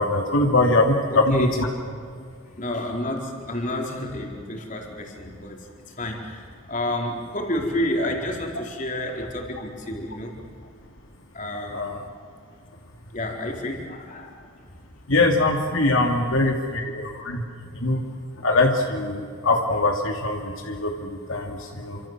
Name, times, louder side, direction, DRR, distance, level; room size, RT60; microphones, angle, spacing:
voice 1, 0.0-1.7 11.7-12.0 15.1-17.4 17.7-18.0 18.4-22.0, left 2 dB, 80° left, 2 dB, 2.7 m, -22 dB
voice 2, 1.1-1.5 2.6-10.4 11.3-11.9 13.1-14.4 16.0-16.2 16.6-16.8, left 1 dB, 40° left, 1 dB, 4.3 m, -30 dB
29.0 x 26.5 x 7.6 m, 2.2 s
head